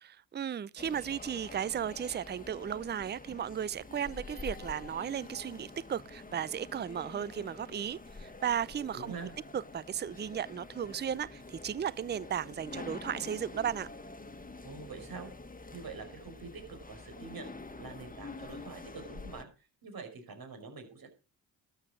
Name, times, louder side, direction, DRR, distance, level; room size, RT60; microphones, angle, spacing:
voice 1, 0.0-9.1 9.5-13.9, right 9 dB, 25° right, 0.5 m, -35 dB
sound 1, 0.8-19.4, left 3 dB, 20° left, 1.6 m, -47 dB
voice 2, 8.9-9.3 14.6-15.3 15.7-17.5 17.8-19.5 19.8-21.1, right 4 dB, 55° right, 5.5 m, -45 dB
12.5 x 7.9 x 6.2 m
supercardioid pair, 50°, 43 cm